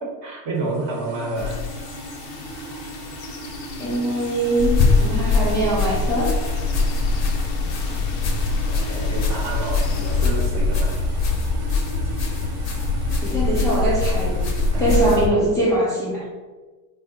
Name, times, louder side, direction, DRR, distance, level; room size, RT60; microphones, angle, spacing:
voice 1, 0.0-1.6 8.7-11.0 14.7-15.0, right 3 dB, 35° right, -3 dB, 0.9 m, -29 dB
sound 1, 0.6-15.3, right 3 dB, 70° right, 0.8 m, -39 dB
sound 2, 1.4-10.3, left 5 dB, 70° left, 0.7 m, -38 dB
voice 2, 3.8-6.3 13.2-14.5 14.8-16.3, right 1 dB, 10° left, -7 dB, 0.3 m, -22 dB
sound 3, 4.6-15.3, left 3 dB, 30° left, 0.7 m, -22 dB
3.6 x 2.2 x 3.6 m, 1.3 s
hypercardioid pair, 90°, 50 cm